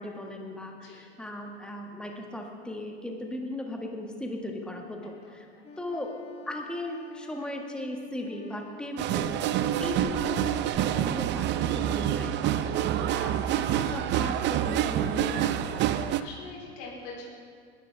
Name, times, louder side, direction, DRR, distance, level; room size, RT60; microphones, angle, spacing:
voice 1, 0.0-5.5 5.8-6.1 6.4-9.3 9.8-12.6 13.1-16.0, left 1 dB, 5° left, 1 dB, 1.6 m, -37 dB
voice 2, 5.2-5.6 8.9-9.2 12.5-13.2 13.5-14.1 16.2-17.2, left 3 dB, 55° left, -4 dB, 4.0 m, -46 dB
Wind instrument woodwind instrument, 5.6-10.0, left 1 dB, 20° left, 1.4 m, -48 dB
sound 1, 9.0-16.2, right 11 dB, 35° right, 0.6 m, -27 dB
19.5 x 11.5 x 3.4 m, 2.1 s
hypercardioid pair, 95°, 34 cm